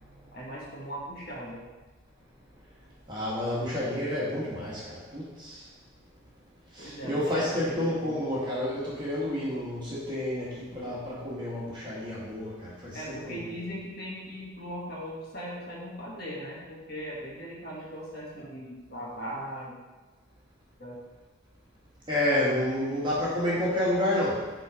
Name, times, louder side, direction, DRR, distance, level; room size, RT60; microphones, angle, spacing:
voice 1, 0.3-1.6 6.8-8.2 12.9-19.7 20.8-21.0, equal, 50° left, -5 dB, 1.6 m, -39 dB
voice 2, 3.1-5.7 6.7-13.6 22.1-24.5, left 1 dB, 20° right, -7 dB, 1.5 m, -30 dB
7.7 x 4.0 x 4.9 m, 1.2 s
head